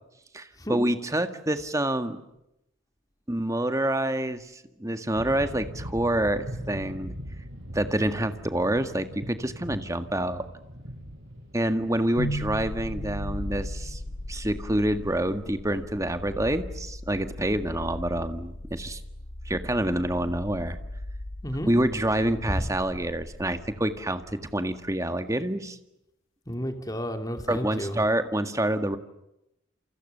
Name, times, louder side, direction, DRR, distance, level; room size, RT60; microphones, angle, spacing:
voice 1, 0.3-2.2 3.3-4.5 4.8-7.1 7.7-10.4 11.5-14.0 14.3-19.0 19.5-20.8 21.7-25.8 27.5-29.0, right 1 dB, 15° right, 9 dB, 1.8 m, -27 dB
sound 1, 5.2-16.7, equal, 60° right, 7.1 m, -42 dB
sound 2, 12.2-24.2, left 1 dB, 90° left, 1.4 m, -37 dB
voice 2, 26.5-28.0, equal, 20° left, 6 dB, 2.7 m, -32 dB
29.0 x 28.5 x 6.9 m, 0.86 s
head